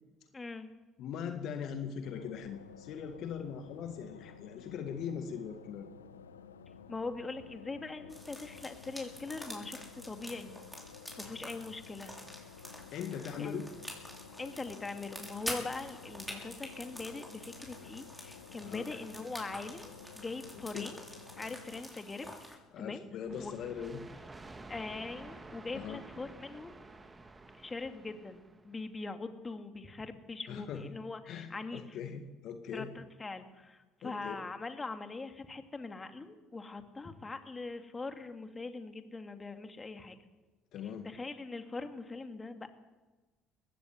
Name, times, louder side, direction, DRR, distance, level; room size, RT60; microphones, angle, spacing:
voice 1, 0.3-0.7 6.9-9.8 10.0-10.6 11.2-12.1 13.4-13.6 14.4-21.0 21.4-23.0 23.4-23.5 24.7-26.8 27.5-32.0 32.7-40.2 41.0-42.7, left 3 dB, 25° left, 7 dB, 2.6 m, -42 dB
voice 2, 1.0-5.9 12.9-13.7 18.6-18.9 20.7-20.9 22.7-24.0 25.7-26.0 30.5-30.9 31.3-32.9 34.0-34.4 40.7-41.1, left 7 dB, 60° left, 7 dB, 1.8 m, -40 dB
sound 1, 2.0-21.8, left 6 dB, 90° left, 0.9 m, -53 dB
sound 2, 8.1-22.6, equal, ahead, 6.6 m, -47 dB
sound 3, 23.3-28.8, right 2 dB, 20° right, 2.3 m, -51 dB
20.0 x 16.5 x 9.6 m, 1.2 s
hypercardioid pair, 55°, 0 cm